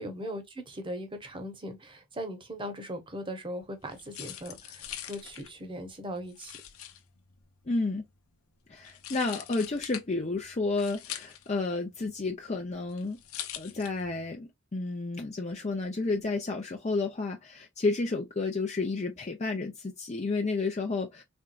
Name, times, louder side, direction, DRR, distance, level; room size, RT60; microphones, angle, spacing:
voice 1, 0.0-6.5, equal, 25° right, 1.1 m, -39 dB
sound 1, 3.6-14.3, left 10 dB, 75° left, 0.8 m, -44 dB
voice 2, 7.7-8.0 8.7-13.2 13.6-21.2, left 3 dB, 30° left, 0.6 m, -31 dB
4.4 x 3.6 x 2.4 m
head